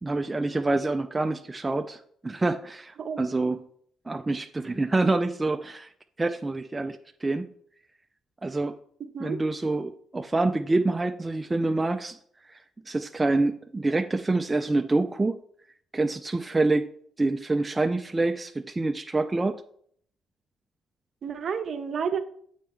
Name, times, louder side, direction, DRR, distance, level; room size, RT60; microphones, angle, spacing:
voice 1, 0.0-3.6 4.1-5.9 6.2-7.5 8.4-8.8 9.2-12.2 12.9-15.4 15.9-16.9 17.2-19.6, right 2 dB, 20° right, 6 dB, 0.3 m, -26 dB
voice 2, 9.0-9.4 21.2-22.2, right 6 dB, 55° right, 8 dB, 0.7 m, -31 dB
7.4 x 4.3 x 3.6 m, 0.64 s
cardioid pair, 90°, 0 cm